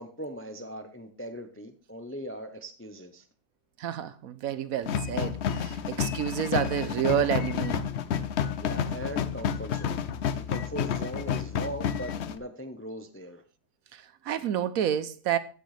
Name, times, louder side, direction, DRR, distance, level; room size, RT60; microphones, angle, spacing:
voice 1, 0.0-3.2 8.6-10.0 10.4-13.4, equal, 15° left, 0.4 m, -39 dB
voice 2, 3.8-7.9 13.9-15.4, right 10 dB, 70° right, 1.0 m, -29 dB
sound 1, 4.9-12.4, left 8 dB, 60° left, 0.7 m, -30 dB
15.5 x 6.4 x 3.3 m
omnidirectional pair, 1.7 m